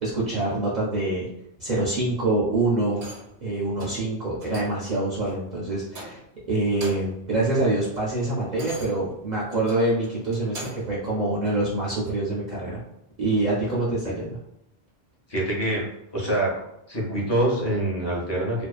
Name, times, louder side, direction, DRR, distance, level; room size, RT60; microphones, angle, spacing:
voice 1, 0.0-1.3 1.6-3.0 3.4-6.2 6.5-12.8 13.2-14.4, right 2 dB, 50° right, -6 dB, 0.6 m, -25 dB
sound 1, 2.9-3.4 3.8-4.1 4.4-4.9 5.3-5.4 5.9-6.4 6.7-7.2 7.6-11.0 11.5-11.6, right 1 dB, 85° right, 1.0 m, -42 dB
voice 2, 15.3-15.8 16.1-16.5 16.9-18.7, right 1 dB, 25° left, -4 dB, 0.8 m, -25 dB
2.5 x 2.2 x 2.3 m, 0.82 s
omnidirectional pair, 1.1 m